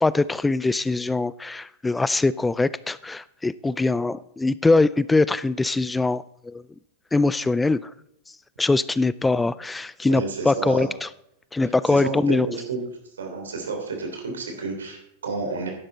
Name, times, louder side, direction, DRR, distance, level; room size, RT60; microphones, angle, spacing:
voice 1, 0.0-6.6 7.1-7.9 8.6-11.1 11.5-12.5, left 3 dB, 10° left, 18 dB, 0.3 m, -22 dB
voice 2, 10.1-10.9 11.9-12.8 13.1-15.7, right 4 dB, 85° right, 3 dB, 3.2 m, -30 dB
11.5 x 10.0 x 4.0 m, 0.77 s
hypercardioid pair, 105°, 0 cm